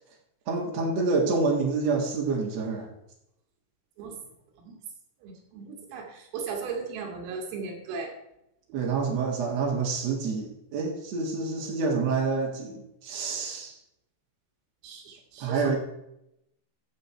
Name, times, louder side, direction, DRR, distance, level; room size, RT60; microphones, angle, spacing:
voice 1, 0.5-2.9 8.7-13.7 15.4-15.8, right 4 dB, 65° right, -1 dB, 1.6 m, -27 dB
voice 2, 5.2-8.1 14.8-15.8, right 5 dB, 90° right, 1 dB, 4.8 m, -37 dB
14.0 x 7.5 x 4.5 m, 0.82 s
omnidirectional pair, 5.8 m